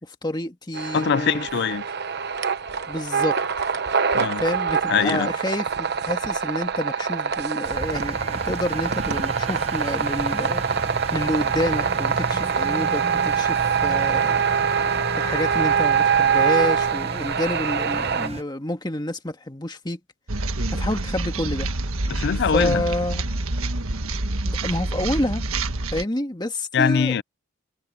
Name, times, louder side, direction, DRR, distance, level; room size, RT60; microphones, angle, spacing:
voice 1, 0.0-1.4 2.9-3.4 4.4-10.6 11.1-14.4 15.2-20.0 20.7-21.7 22.5-23.3 24.4-25.4 25.9-27.2, left 1 dB, 20° left, 1.7 m, -28 dB
sound 1, 0.7-18.3, right 6 dB, 50° right, 1.0 m, -24 dB
voice 2, 0.9-1.8 4.1-4.4 4.9-5.3 22.1-22.8 26.7-27.2, left 7 dB, 50° left, 0.4 m, -22 dB
Engine, 7.6-18.4, right 2 dB, 30° right, 0.9 m, -34 dB
sound 2, 20.3-26.0, right 2 dB, 80° right, 1.5 m, -27 dB
head